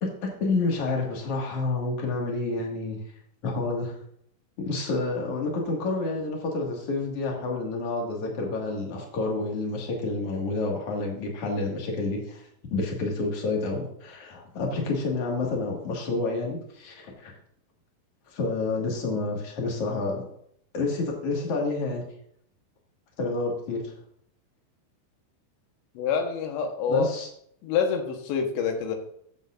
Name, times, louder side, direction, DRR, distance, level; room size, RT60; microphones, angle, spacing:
voice 1, 0.0-3.0 3.4-3.9 4.6-12.4 12.7-17.3 18.3-20.2 20.7-22.0 23.2-23.9 26.9-27.3, left 3 dB, 45° left, -1 dB, 2.1 m, -29 dB
voice 2, 26.0-27.1 27.6-29.0, left 6 dB, 90° left, 4 dB, 3.4 m, -26 dB
14.5 x 7.2 x 2.5 m, 0.68 s
omnidirectional pair, 5.1 m